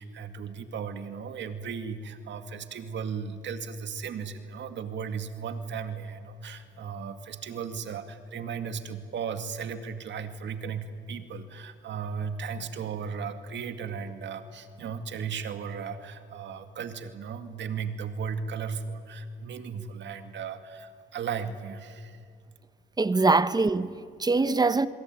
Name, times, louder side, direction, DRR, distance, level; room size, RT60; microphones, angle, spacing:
voice 1, 0.0-22.2, right 6 dB, 65° right, 2.2 m, -36 dB
voice 2, 23.0-24.9, right 3 dB, 20° right, 1.1 m, -23 dB
27.0 x 22.5 x 9.3 m
cardioid pair, 90°, 20 cm